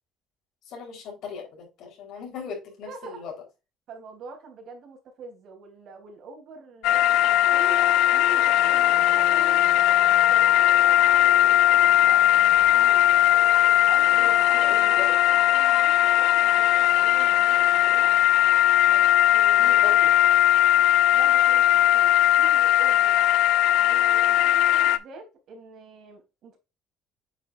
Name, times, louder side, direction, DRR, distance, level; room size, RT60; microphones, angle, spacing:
voice 1, 0.7-3.3 14.1-15.1 19.6-20.1, left 6 dB, 65° left, 4.0 m, -38 dB
voice 2, 2.9-3.3 3.9-7.8 8.1-9.8 10.1-12.4 12.7-13.1 13.9-18.2 18.8-19.9 20.7-20.8 21.1-23.4 23.8-26.6, right 4 dB, 60° right, 3.3 m, -45 dB
sound 1, 6.8-25.0, left 13 dB, 90° left, 0.6 m, -19 dB
8.4 x 5.6 x 2.6 m
cardioid pair, 125°, 0 cm